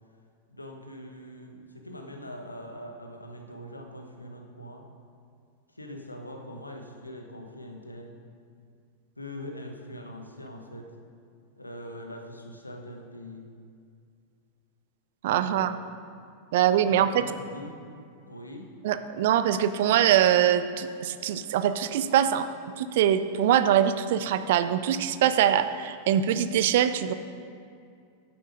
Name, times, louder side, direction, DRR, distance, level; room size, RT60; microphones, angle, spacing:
voice 1, 0.5-4.9 5.7-8.2 9.2-10.9 11.6-13.5 15.4-15.7 16.8-17.8 18.3-18.7, equal, 85° left, 3 dB, 1.2 m, -42 dB
voice 2, 15.2-15.8 16.5-17.2 18.8-22.5 22.8-27.1, right 10 dB, 55° right, 12 dB, 0.5 m, -23 dB
9.5 x 9.0 x 4.9 m, 2.3 s
figure-of-eight pair, 90°, 0 cm